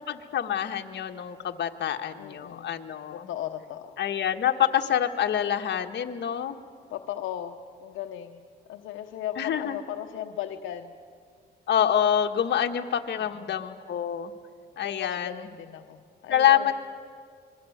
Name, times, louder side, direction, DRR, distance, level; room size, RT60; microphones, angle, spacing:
voice 1, 0.0-3.3 4.0-6.6 9.4-9.8 11.7-14.3 14.8-15.4 16.3-16.7, left 10 dB, 60° left, 5 dB, 1.6 m, -26 dB
voice 2, 2.2-2.7 3.1-4.0 6.9-10.9 13.2-13.6 14.8-16.7, left 11 dB, 80° left, 5 dB, 1.0 m, -37 dB
27.0 x 22.0 x 8.0 m, 2.1 s
cardioid pair, 90°, 20 cm